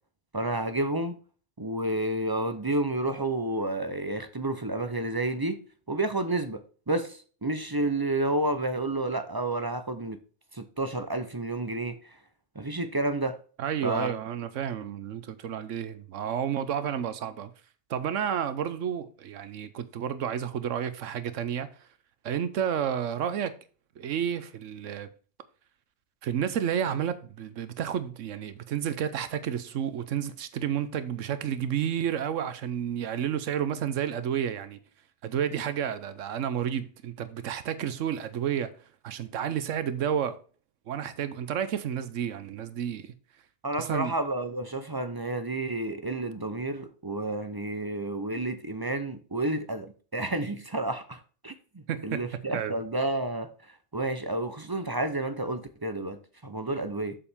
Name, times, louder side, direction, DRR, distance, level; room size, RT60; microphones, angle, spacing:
voice 1, 0.3-1.2 1.6-5.6 5.9-10.2 10.5-12.2 12.5-13.4 13.8-14.1 43.6-51.6 52.0-57.2, right 2 dB, 25° right, 0.5 m, -30 dB
voice 2, 13.6-17.5 17.9-21.7 22.2-23.5 24.0-25.1 26.2-34.8 35.2-38.7 39.0-40.4 40.9-43.1 43.8-44.1 51.9-52.3 52.5-52.7, right 9 dB, 85° right, 1.1 m, -31 dB
7.1 x 7.0 x 3.6 m
omnidirectional pair, 1.3 m